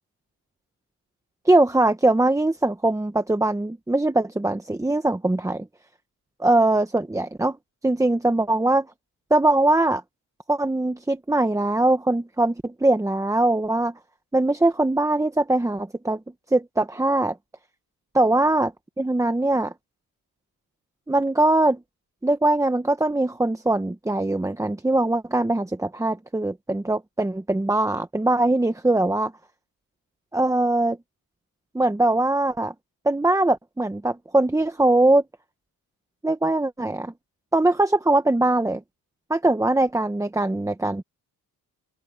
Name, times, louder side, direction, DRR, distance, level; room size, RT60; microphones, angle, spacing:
voice 1, 1.4-5.6 6.4-7.6 7.8-8.9 9.3-10.0 10.5-13.9 14.3-16.2 16.5-17.4 18.1-19.7 21.1-21.8 22.2-29.3 30.3-31.0 31.7-32.7 33.0-35.2 36.2-37.1 37.5-38.8 39.3-41.0, right 2 dB, 10° right, 1.1 m, -21 dB
open air
cardioid pair, 115°, 37 cm